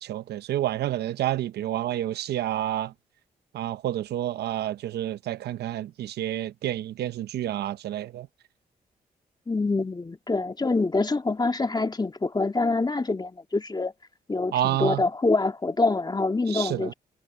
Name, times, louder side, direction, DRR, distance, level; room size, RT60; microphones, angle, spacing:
voice 1, 0.0-2.9 3.5-8.3 14.5-15.0 16.5-16.9, right 12 dB, 85° right, 0.8 m, -29 dB
voice 2, 9.5-13.9 14.3-16.9, left 3 dB, 25° left, 2.6 m, -25 dB
cardioid pair, 65°, 17 cm